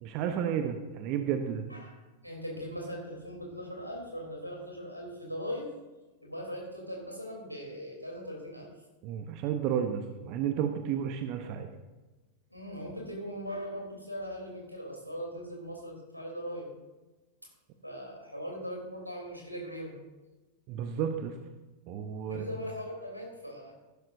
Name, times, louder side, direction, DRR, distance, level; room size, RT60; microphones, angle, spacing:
voice 1, 0.0-1.6 9.0-11.7 20.7-21.4 21.9-22.5, right 8 dB, 40° right, 7 dB, 0.8 m, -32 dB
voice 2, 2.2-5.7 6.2-8.7 12.5-16.7 17.8-20.0 22.3-23.7, equal, 90° right, 0 dB, 3.2 m, -40 dB
14.0 x 12.0 x 2.6 m, 1.2 s
figure-of-eight pair, 90°, 0 cm